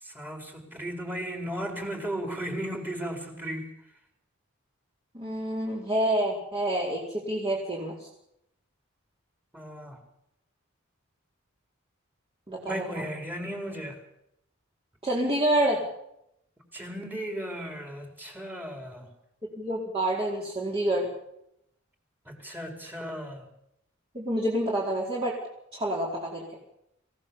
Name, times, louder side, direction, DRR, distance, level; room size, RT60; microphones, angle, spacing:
voice 1, 0.0-3.7 9.5-10.0 12.7-14.0 16.7-19.1 22.3-23.5, equal, 10° right, 3 dB, 4.5 m, -35 dB
voice 2, 5.1-8.1 12.5-13.0 15.0-15.8 19.6-21.1 24.1-25.4 25.7-26.6, right 1 dB, 25° right, -3 dB, 4.7 m, -28 dB
27.0 x 17.0 x 7.2 m, 0.79 s
head